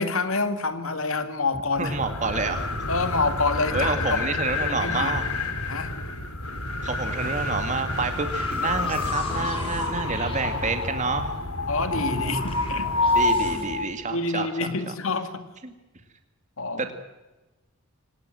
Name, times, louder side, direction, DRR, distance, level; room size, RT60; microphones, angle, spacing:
voice 1, 0.0-2.0 2.9-4.2 4.7-5.2 5.7-5.9 11.7-12.9 14.1-15.4 16.6-16.9, left 3 dB, 65° left, 9 dB, 2.2 m, -27 dB
sound 1, 1.8-13.9, left 2 dB, 85° left, 3.1 m, -28 dB
voice 2, 1.8-2.7 3.7-5.2 6.8-11.3 13.1-14.9 15.6-15.7, right 3 dB, 35° right, 7 dB, 2.3 m, -28 dB
sound 2, 8.3-11.2 11.9-13.7, left 1 dB, 25° left, 5.1 m, -39 dB
26.0 x 18.0 x 7.8 m, 1.1 s
head